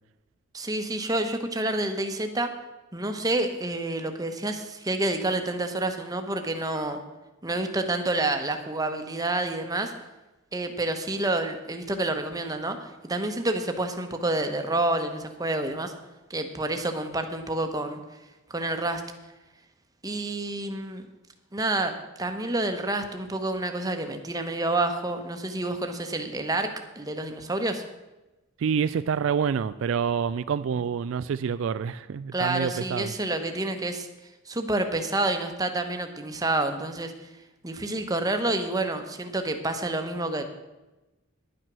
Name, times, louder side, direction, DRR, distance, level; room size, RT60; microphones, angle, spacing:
voice 1, 0.5-2.5 2.9-7.0 7.4-9.9 10.5-15.9 16.3-18.0 18.5-19.0 20.0-21.1 21.5-26.7 27.0-27.8 32.3-34.1 34.5-37.3 37.6-40.4, right 2 dB, 15° right, 6 dB, 1.0 m, -28 dB
voice 2, 28.6-33.1, right 7 dB, 65° right, 13 dB, 0.3 m, -27 dB
10.5 x 9.0 x 6.1 m, 1.1 s
head